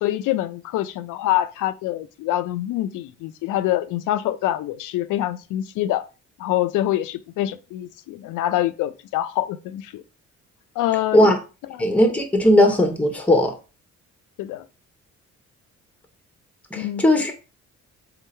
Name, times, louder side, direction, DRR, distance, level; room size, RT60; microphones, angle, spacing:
voice 1, 0.0-6.0 6.4-10.0 10.8-11.3 11.7-11.9 14.4-14.6 16.7-17.0, left 13 dB, 85° left, 0.5 m, -25 dB
voice 2, 11.8-13.5 16.7-17.3, left 1 dB, 5° left, 0.9 m, -17 dB
3.8 x 2.4 x 4.2 m
cardioid pair, 90°, 30 cm